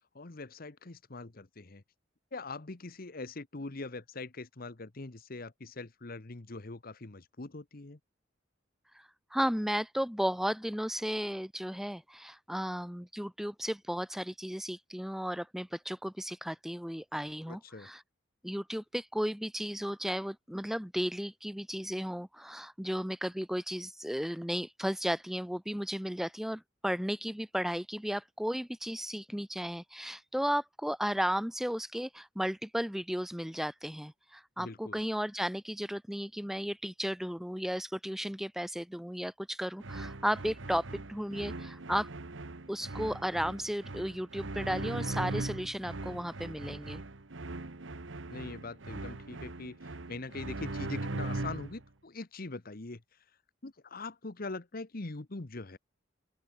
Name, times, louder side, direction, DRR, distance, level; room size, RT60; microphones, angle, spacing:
voice 1, 0.1-1.8 2.3-8.0 17.5-17.9 34.6-35.0 48.3-53.0 53.6-55.8, left 3 dB, 50° left, 1.2 m, -42 dB
voice 2, 9.3-18.0 18.4-42.1 42.7-47.0, equal, ahead, 0.8 m, -34 dB
sound 1, 39.8-51.8, right 2 dB, 85° right, 1.4 m, -40 dB
open air
head